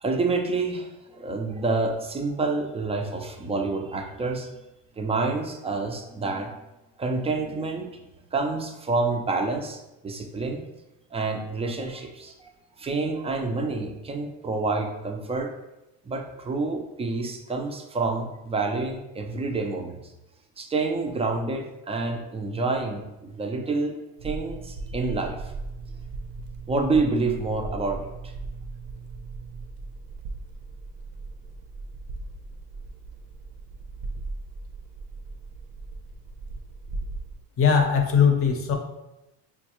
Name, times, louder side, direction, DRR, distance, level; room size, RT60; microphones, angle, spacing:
voice 1, 0.0-4.5 5.0-6.6 7.0-8.0 8.3-10.7 11.1-12.5 12.8-15.5 16.1-20.0 20.6-23.9 24.2-25.5 26.7-28.3, right 3 dB, 15° right, 3 dB, 0.4 m, -28 dB
sound 1, 24.2-37.4, right 3 dB, 60° right, 0.6 m, -38 dB
voice 2, 37.6-38.7, left 6 dB, 35° left, 3 dB, 0.6 m, -20 dB
5.0 x 2.2 x 2.9 m, 0.94 s
cardioid pair, 110°, 39 cm